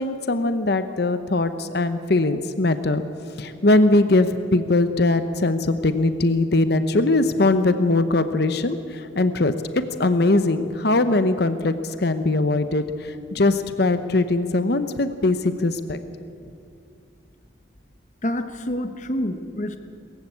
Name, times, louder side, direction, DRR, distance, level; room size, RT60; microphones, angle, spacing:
voice 1, 0.0-3.0 3.4-16.0, left 2 dB, 55° left, 10 dB, 0.9 m, -21 dB
voice 2, 18.2-19.8, left 1 dB, 40° left, 9 dB, 1.2 m, -28 dB
21.5 x 15.0 x 8.5 m, 2.4 s
head